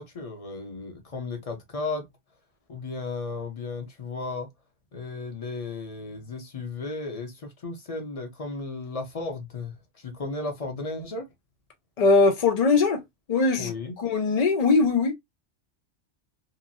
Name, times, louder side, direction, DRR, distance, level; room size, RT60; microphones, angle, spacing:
voice 1, 0.0-2.0 2.7-4.5 4.9-11.3 13.6-14.0, left 3 dB, 35° left, 0.8 m, -34 dB
voice 2, 12.0-13.0 13.3-13.7 14.0-15.1, left 4 dB, 65° left, 0.4 m, -21 dB
2.9 x 2.5 x 2.5 m
omnidirectional pair, 1.2 m